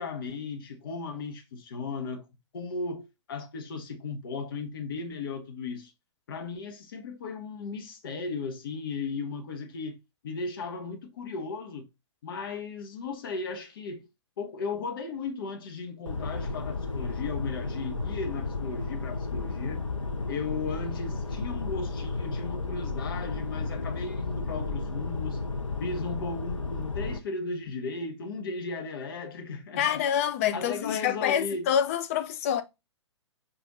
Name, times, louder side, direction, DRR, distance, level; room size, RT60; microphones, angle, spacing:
voice 1, 0.0-2.2 2.5-5.9 6.3-10.0 10.2-11.9 12.2-14.1 14.4-19.8 20.3-25.4 25.8-29.9 30.5-31.7, left 4 dB, 45° left, 0.9 m, -36 dB
car inside driving fast diesel engine tire sound, 16.1-27.2, left 3 dB, 85° left, 0.6 m, -33 dB
voice 2, 29.8-32.6, left 9 dB, 30° left, 0.3 m, -27 dB
5.1 x 2.5 x 3.7 m
figure-of-eight pair, 120°, 16 cm